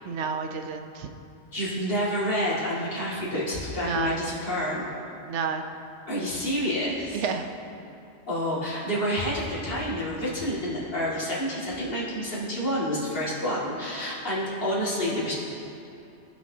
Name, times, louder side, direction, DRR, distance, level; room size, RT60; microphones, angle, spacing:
voice 1, 0.0-1.1 3.8-4.2 5.3-5.6 7.1-7.5, right 5 dB, 90° right, 6 dB, 1.0 m, -30 dB
voice 2, 1.5-4.9 6.1-7.2 8.3-15.3, equal, 55° left, -8 dB, 2.4 m, -28 dB
18.0 x 6.1 x 2.8 m, 2.7 s
omnidirectional pair, 1.2 m